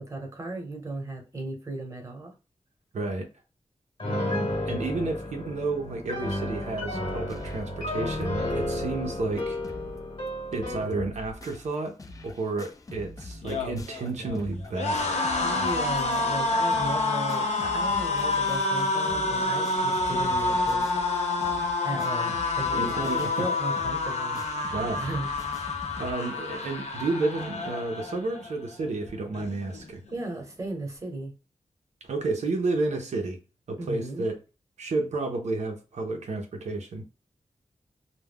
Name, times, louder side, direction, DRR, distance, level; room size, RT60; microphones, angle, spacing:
voice 1, 0.0-2.3 15.4-20.9 21.8-24.4 25.0-25.3 30.1-31.3 33.8-34.3, right 2 dB, 25° right, 0.9 m, -36 dB
voice 2, 2.9-3.3 4.0-9.6 10.5-12.0 12.2-15.2 22.7-23.5 24.7-25.0 26.0-30.0 32.0-33.4 33.7-34.4 34.8-37.0, right 3 dB, 80° right, 0.5 m, -31 dB
Piano, 4.0-10.9, left 1 dB, 50° left, 1.1 m, -32 dB
sound 1, 7.3-7.8 8.2-8.3 8.5-8.6 9.1-9.2 9.4-10.0 10.3-26.1, left 2 dB, 30° left, 0.3 m, -44 dB
sound 2, 13.3-28.5 28.9-29.1 29.3-30.1, left 3 dB, 75° left, 0.6 m, -28 dB
2.2 x 2.1 x 3.4 m
wide cardioid pair, 115°, 12 cm